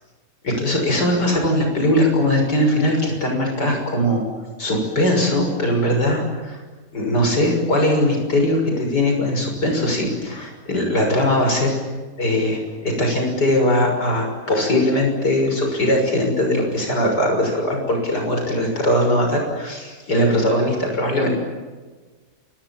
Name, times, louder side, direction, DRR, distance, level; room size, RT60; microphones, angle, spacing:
voice 1, 0.4-4.2 4.6-6.6 6.9-11.8 12.2-21.3, left 1 dB, 85° left, 2 dB, 6.9 m, -20 dB
30.0 x 26.5 x 7.4 m, 1.4 s
omnidirectional pair, 1.7 m